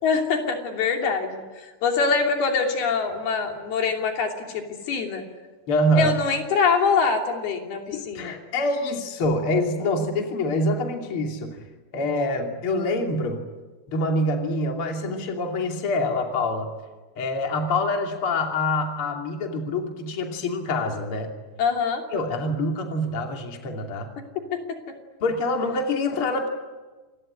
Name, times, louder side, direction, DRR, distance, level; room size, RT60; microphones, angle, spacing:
voice 1, 0.0-5.2 6.0-8.3 21.6-22.0 24.5-24.8, left 5 dB, 85° left, 3 dB, 4.9 m, -24 dB
voice 2, 5.7-6.1 7.9-11.6 11.9-13.4 13.9-16.7 17.2-21.3 22.1-24.1 25.2-26.5, left 1 dB, 40° left, 3 dB, 3.3 m, -25 dB
28.0 x 21.0 x 9.9 m, 1.3 s
omnidirectional pair, 4.3 m